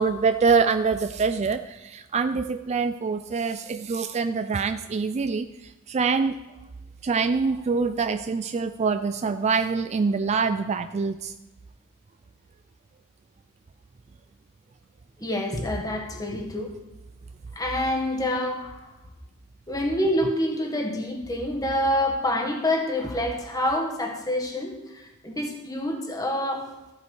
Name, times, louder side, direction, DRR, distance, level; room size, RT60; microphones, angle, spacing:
voice 1, 0.0-5.5 5.9-6.4 7.0-11.3, right 5 dB, 30° right, 10 dB, 0.3 m, -25 dB
voice 2, 15.2-16.7 17.5-18.8 19.7-26.7, left 1 dB, 15° left, 2 dB, 1.6 m, -27 dB
14.0 x 7.8 x 4.7 m, 1.1 s
head